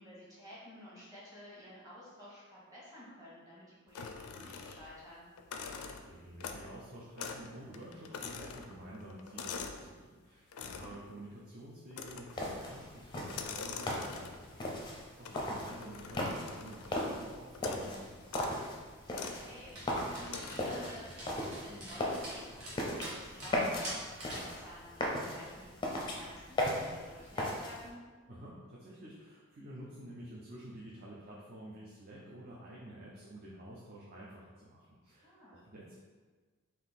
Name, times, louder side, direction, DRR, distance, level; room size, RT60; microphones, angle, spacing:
voice 1, 0.0-5.2 10.6-10.9 15.3-15.7 19.1-28.0 35.2-35.6, equal, 15° right, -8 dB, 1.3 m, -52 dB
sound 1, 3.9-5.0 5.4-6.8 7.2-7.5 7.7-9.9 10.5-11.0 11.9-12.5 13.2-14.5 15.2-17.0 17.5-17.9 18.2-18.6 19.1-19.4 20.3-20.8, left 5 dB, 85° left, 0.4 m, -44 dB
voice 2, 6.1-18.6 28.3-36.0, right 1 dB, 45° right, -6 dB, 0.6 m, -50 dB
sound 2, 12.3-27.9, left 1 dB, 20° left, 0.5 m, -38 dB
Dog, 19.7-24.5, right 1 dB, 85° right, 1.5 m, -46 dB
3.7 x 2.7 x 4.1 m, 1.4 s
head